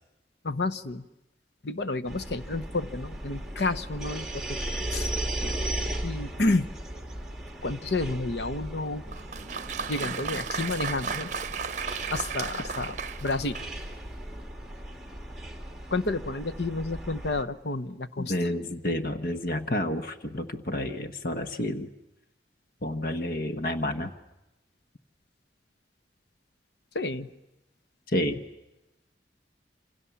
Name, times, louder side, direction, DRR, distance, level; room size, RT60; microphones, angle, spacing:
voice 1, 0.4-1.1 1.6-4.6 4.9-5.1 6.0-6.7 7.6-9.0 9.9-11.3 12.1-13.6 15.9-18.5 26.9-27.3, left 2 dB, 75° left, 10 dB, 1.1 m, -30 dB
sound 1, 2.1-17.4, right 1 dB, ahead, 2.0 m, -37 dB
Applause, 9.1-13.9, right 6 dB, 45° right, 0.9 m, -34 dB
voice 2, 18.2-21.9 22.8-24.1 28.1-28.4, left 1 dB, 55° left, 9 dB, 1.2 m, -30 dB
28.0 x 27.5 x 7.2 m, 0.96 s
head